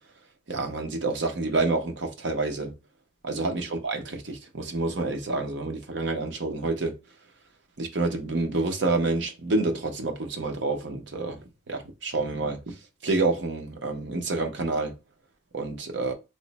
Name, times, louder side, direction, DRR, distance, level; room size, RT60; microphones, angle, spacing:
voice 1, 0.5-2.7 3.3-6.9 7.8-11.4 11.7-12.6 13.0-14.9 15.5-16.1, right 3 dB, 60° right, 0.7 m, -28 dB
3.1 x 2.0 x 4.0 m
head